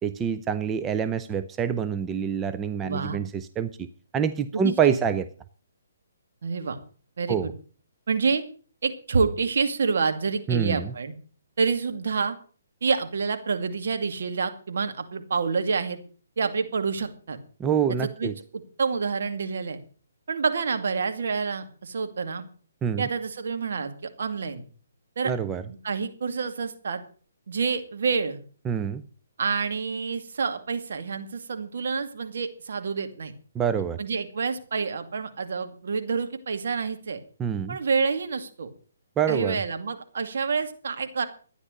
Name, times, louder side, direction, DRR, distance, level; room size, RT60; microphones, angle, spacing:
voice 1, 0.0-3.9 4.1-5.3 7.3-7.5 10.5-10.9 17.6-18.3 22.8-23.1 25.2-25.6 28.7-29.0 33.5-34.0 37.4-37.8 39.2-39.6, right 7 dB, 15° right, 11 dB, 0.6 m, -26 dB
voice 2, 2.8-3.2 4.5-5.0 6.4-6.8 7.2-7.5 8.1-8.4 8.8-11.1 11.6-12.4 12.8-16.0 16.4-17.4 18.2-18.3 18.8-19.8 20.3-22.5 23.0-24.7 25.2-25.3 25.7-27.0 27.5-28.4 29.4-33.3 34.0-37.2 37.7-38.7 39.3-41.3, right 5 dB, 65° right, 7 dB, 2.4 m, -28 dB
13.5 x 10.0 x 6.6 m, 0.41 s
hypercardioid pair, 140°, 0 cm